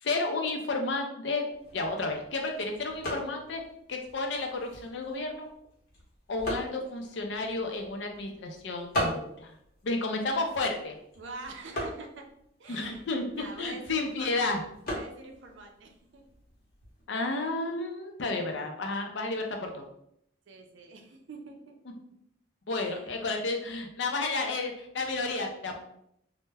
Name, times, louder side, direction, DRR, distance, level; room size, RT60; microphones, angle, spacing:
voice 1, 0.0-3.6 3.9-5.5 6.3-9.5 9.8-11.0 12.7-14.6 17.1-19.8 21.9-22.0 22.7-25.8, left 3 dB, 65° left, 3 dB, 0.4 m, -32 dB
sound 1, 1.5-17.0, equal, 45° left, 0.8 m, -41 dB
voice 2, 11.2-12.3 12.6-13.0 13.3-14.5 14.9-16.2 20.5-21.8 22.7-23.1, right 3 dB, 70° right, 3 dB, 0.5 m, -45 dB
2.1 x 2.1 x 3.3 m, 0.73 s
head